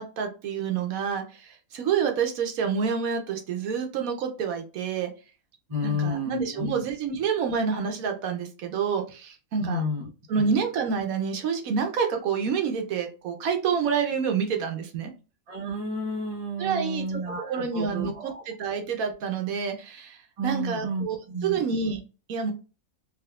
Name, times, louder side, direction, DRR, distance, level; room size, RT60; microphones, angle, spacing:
voice 1, 0.0-5.1 5.8-9.8 10.3-15.1 16.6-17.2 17.5-21.2 21.4-22.0 22.3-22.5, right 6 dB, 80° right, 5 dB, 1.1 m, -28 dB
voice 2, 5.7-6.8 9.6-10.1 10.4-10.5 15.5-18.4 20.4-21.6, left 1 dB, 30° right, 0 dB, 0.6 m, -31 dB
3.5 x 2.7 x 2.3 m, 0.33 s
omnidirectional pair, 1.5 m